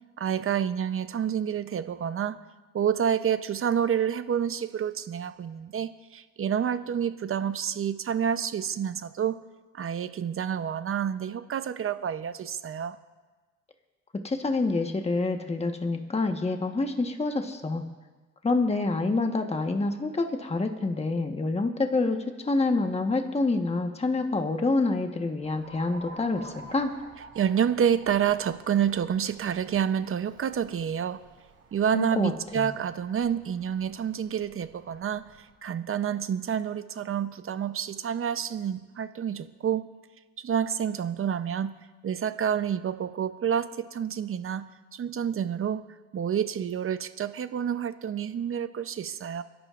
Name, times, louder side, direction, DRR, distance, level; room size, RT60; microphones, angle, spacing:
voice 1, 0.2-2.4 2.7-9.4 9.7-13.0 27.4-31.2 31.7-35.2 35.6-39.8 40.4-41.7 42.0-44.6 44.9-45.8 46.1-49.4, right 8 dB, 45° right, 12 dB, 0.8 m, -28 dB
voice 2, 14.2-17.8 18.4-26.9 31.9-32.7, left 3 dB, 20° left, 4 dB, 1.3 m, -27 dB
Alarm, 25.4-35.5, right 3 dB, 70° right, 4.1 m, -51 dB
29.5 x 11.0 x 2.5 m, 1.3 s
cardioid pair, 90°, 30 cm